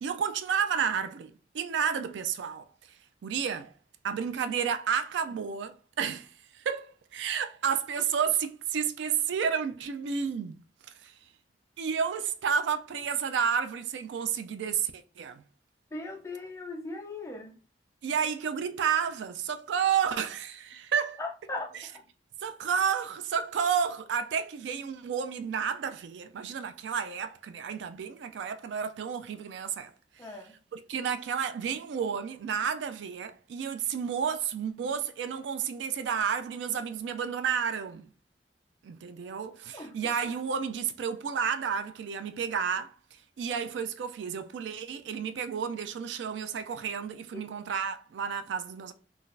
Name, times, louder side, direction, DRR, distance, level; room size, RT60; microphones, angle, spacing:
voice 1, 0.0-2.7 3.2-3.7 4.0-10.6 11.0-11.2 11.8-15.4 18.0-21.2 21.7-21.9 22.4-30.3 30.7-38.1 38.8-43.0 43.4-48.9, right 7 dB, 90° right, 0.3 m, -31 dB
voice 2, 15.9-17.6 21.2-22.1 30.2-30.6 39.7-40.0 47.3-47.4, left 2 dB, 15° left, 0.5 m, -39 dB
3.8 x 2.4 x 2.5 m
head